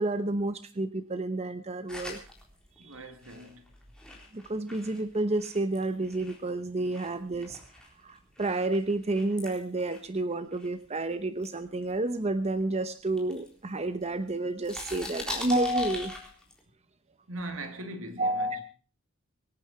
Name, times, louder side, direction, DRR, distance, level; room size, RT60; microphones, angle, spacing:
voice 1, 0.0-2.2 2.8-3.0 4.3-7.6 8.0-16.3 18.2-18.6, right 2 dB, 30° right, 0.9 m, -30 dB
sound 1, 1.9-6.5 6.9-11.0 11.4-12.6 13.1-14.3 14.6-16.6, left 2 dB, 5° left, 3.9 m, -43 dB
voice 2, 2.8-3.7 17.3-18.6, right 1 dB, 75° right, 2.6 m, -40 dB
25.0 x 9.8 x 4.4 m
head